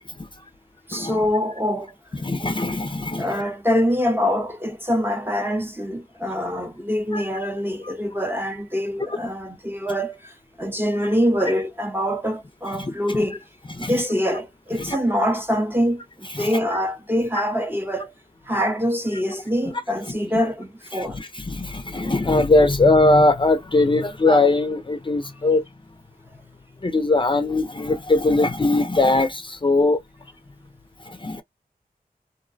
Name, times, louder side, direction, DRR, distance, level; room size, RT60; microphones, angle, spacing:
voice 1, 0.9-1.9 3.2-13.4 13.8-18.1 18.5-21.2 21.9-22.1, equal, 15° right, 0.7 m, -24 dB
voice 2, 2.2-3.2 7.1-7.2 12.8-12.9 13.8-13.9 14.8-15.0 16.4-16.5 20.9-25.6 26.8-30.0 31.1-31.4, left 2 dB, 30° left, 0.5 m, -20 dB
2.6 x 2.1 x 2.5 m
wide cardioid pair, 85°, 16 cm